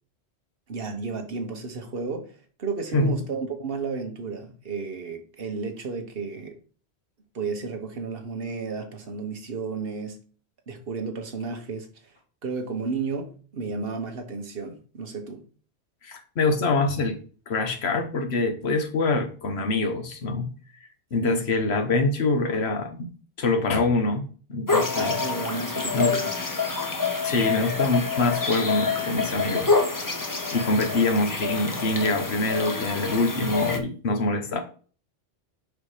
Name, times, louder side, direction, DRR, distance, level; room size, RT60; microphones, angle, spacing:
voice 1, 0.7-6.6 7.3-10.2 10.7-12.1 12.4-15.4 21.2-21.5 24.9-26.3, right 4 dB, 55° right, 1.4 m, -33 dB
voice 2, 16.0-17.2 17.5-20.5 21.1-23.1 23.4-25.2 25.9-26.1 27.2-29.8 30.5-34.6, left 3 dB, 65° left, 1.4 m, -25 dB
sound 1, 24.7-33.8, left 4 dB, 20° left, 0.7 m, -27 dB
5.5 x 5.0 x 4.9 m
omnidirectional pair, 1.2 m